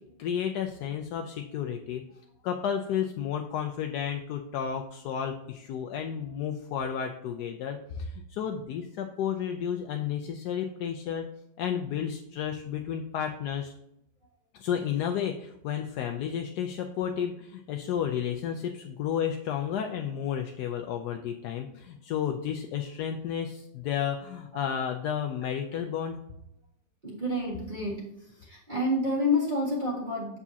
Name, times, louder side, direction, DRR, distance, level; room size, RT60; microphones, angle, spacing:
voice 1, 0.2-2.0 2.4-11.3 11.6-13.7 14.5-26.2, left 8 dB, 70° left, 4 dB, 1.1 m, -32 dB
voice 2, 27.0-30.4, left 1 dB, 25° right, -7 dB, 1.8 m, -29 dB
7.2 x 6.9 x 2.8 m, 0.78 s
omnidirectional pair, 2.0 m